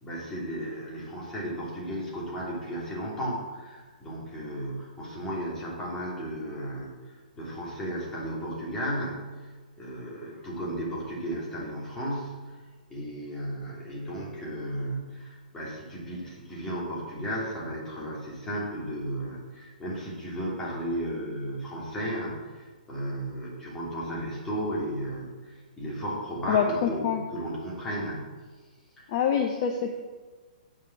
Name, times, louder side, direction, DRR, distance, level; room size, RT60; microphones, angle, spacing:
voice 1, 0.0-9.5 9.8-12.5 12.9-28.4 29.0-29.1, equal, 10° left, -5 dB, 2.9 m, -34 dB
voice 2, 26.5-27.2 29.1-30.0, left 7 dB, 35° left, 4 dB, 0.7 m, -26 dB
8.4 x 5.8 x 6.0 m, 1.4 s
figure-of-eight pair, 120°, 5 cm